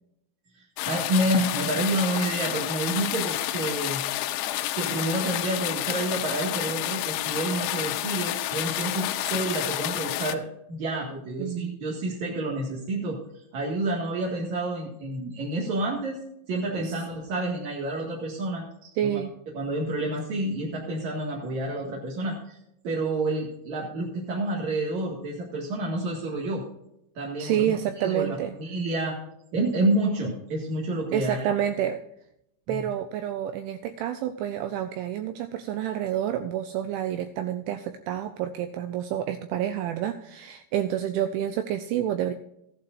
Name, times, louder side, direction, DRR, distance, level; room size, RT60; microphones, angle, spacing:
voice 1, 0.5-4.0 4.7-10.4 10.7-16.2 16.5-18.6 19.0-19.2 19.5-22.6 22.8-26.6 27.1-28.3 28.5-29.2 29.5-31.4 32.7-32.8, right 2 dB, 55° right, -4 dB, 2.2 m, -29 dB
sound 1, 0.8-10.4, left 14 dB, 85° left, 3.4 m, -29 dB
voice 2, 11.4-11.8 16.8-17.0 18.8-19.3 27.4-28.6 31.1-32.0 32.7-42.3, right 10 dB, 85° right, 9 dB, 2.7 m, -29 dB
15.5 x 11.5 x 2.5 m, 0.80 s
omnidirectional pair, 5.9 m